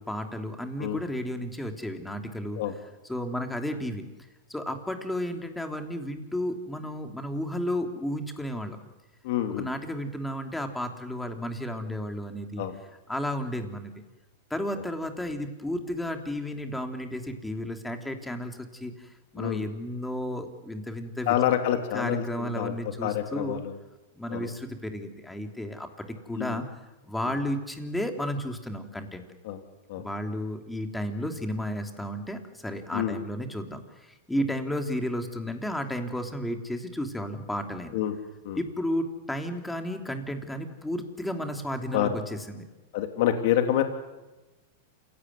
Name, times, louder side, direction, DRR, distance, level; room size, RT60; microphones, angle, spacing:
voice 1, 0.0-2.6 3.1-4.0 4.5-8.8 9.6-12.6 13.1-13.9 14.5-19.1 19.3-21.3 21.9-23.6 24.2-26.6 27.1-29.2 30.0-38.0 38.6-42.6, equal, 5° left, 5 dB, 3.3 m, -33 dB
voice 2, 9.2-9.7 12.6-12.8 19.3-19.6 21.3-22.7 23.0-23.8 24.3-24.5 26.3-26.6 27.2-27.4 29.4-29.6 29.9-30.1 32.9-33.2 37.9-38.2 38.4-38.6 41.9-42.2 42.9-43.8, left 11 dB, 60° left, 6 dB, 3.0 m, -27 dB
28.0 x 17.5 x 9.6 m, 1.1 s
hypercardioid pair, 115°, 0 cm